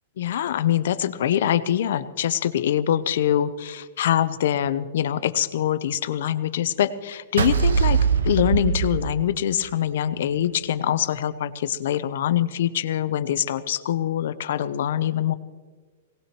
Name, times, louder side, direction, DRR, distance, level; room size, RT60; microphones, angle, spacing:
voice 1, 0.2-8.0 8.2-15.3, left 10 dB, 70° left, 14 dB, 0.7 m, -24 dB
sound 1, 7.4-9.7, right 6 dB, 85° right, 0.8 m, -21 dB
18.5 x 18.0 x 3.0 m, 1.4 s
hypercardioid pair, 135°, 0 cm